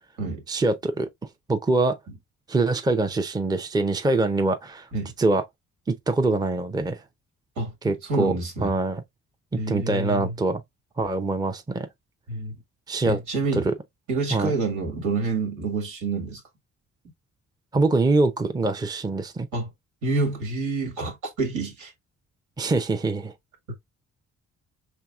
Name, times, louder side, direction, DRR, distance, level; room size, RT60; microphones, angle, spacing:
voice 1, 0.5-1.1 1.5-2.0 2.5-4.9 5.2-5.4 5.9-7.0 7.8-8.3 8.6-9.0 9.5-10.6 11.0-11.9 12.9-13.2 13.5-13.7 14.3-14.5 17.7-19.5 22.6-23.3, right 2 dB, 15° right, 0.6 m, -24 dB
voice 2, 8.0-8.7 9.6-10.3 12.3-12.6 13.0-13.7 14.1-16.4 19.5-19.7 20.0-21.9, right 3 dB, 80° right, 1.9 m, -28 dB
4.5 x 3.5 x 2.4 m
cardioid pair, 90°, 30 cm